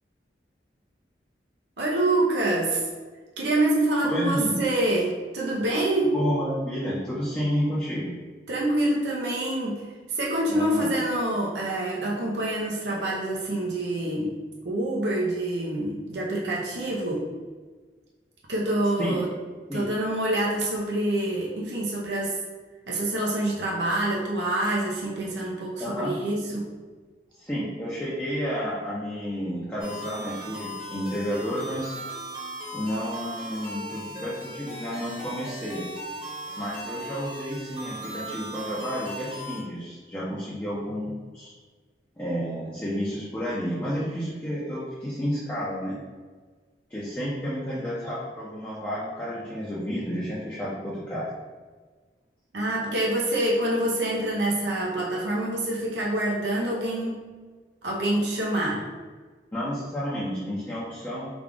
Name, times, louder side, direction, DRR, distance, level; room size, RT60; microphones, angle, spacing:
voice 1, 1.8-2.8 3.4-6.1 8.5-14.3 14.6-17.3 18.5-19.3 19.7-22.4 22.9-26.7 52.5-57.2 57.8-58.9, right 1 dB, 75° right, -4 dB, 0.7 m, -26 dB
voice 2, 4.1-4.6 6.1-8.2 10.5-10.9 19.0-19.2 19.7-19.8 25.8-26.2 27.4-32.0 32.7-35.8 36.6-41.5 42.2-46.0 46.9-51.3 59.5-61.3, equal, 10° left, -8 dB, 0.6 m, -31 dB
sound 1, 29.8-39.6, right 1 dB, 30° right, 1.0 m, -38 dB
3.5 x 2.3 x 3.7 m, 1.4 s
head